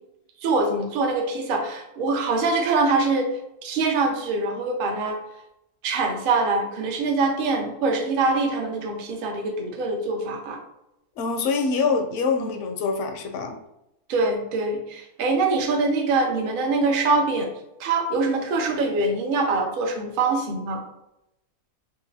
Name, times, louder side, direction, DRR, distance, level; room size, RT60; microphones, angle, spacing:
voice 1, 0.4-3.3 3.6-5.2 5.8-10.6 12.4-12.5 14.1-17.5 17.8-20.8, right 3 dB, 70° right, 3 dB, 0.5 m, -24 dB
voice 2, 11.2-13.6, left 4 dB, 70° left, 5 dB, 0.7 m, -25 dB
3.9 x 2.8 x 2.7 m, 0.86 s
omnidirectional pair, 1.6 m